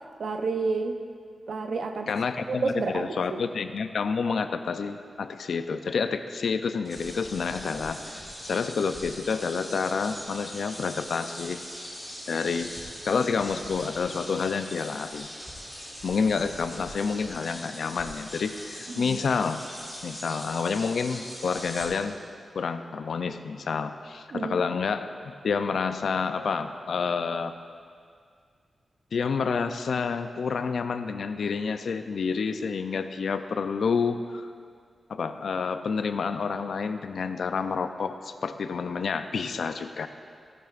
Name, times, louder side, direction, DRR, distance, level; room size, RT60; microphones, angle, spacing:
voice 1, 0.2-1.0 1.5-2.1 2.5-3.4 18.9-19.2 24.3-24.6, right 3 dB, 60° right, 6 dB, 0.7 m, -30 dB
voice 2, 2.1-11.6 12.3-12.7 13.0-15.3 16.0-19.6 20.0-22.2 22.5-27.5 29.1-34.5 35.1-40.1, left 5 dB, 70° left, 9 dB, 0.5 m, -29 dB
sound 1, 6.8-21.9, equal, 10° right, 2.8 m, -41 dB
16.5 x 11.0 x 2.5 m, 2.1 s
wide cardioid pair, 140°, 0 cm